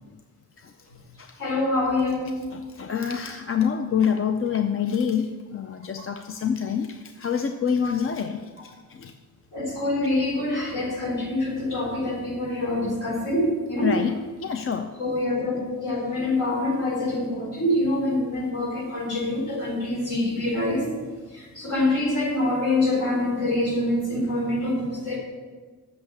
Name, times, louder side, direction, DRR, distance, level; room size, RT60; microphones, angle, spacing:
voice 1, 1.4-2.4 9.5-14.0 15.0-20.9 21.3-25.2, left 1 dB, 60° left, -2 dB, 3.7 m, -25 dB
voice 2, 2.5-8.5 8.9-9.1 13.8-14.1 14.4-14.9, left 7 dB, 40° left, 7 dB, 0.5 m, -26 dB
8.5 x 6.6 x 7.2 m, 1.4 s
wide cardioid pair, 110°, 34 cm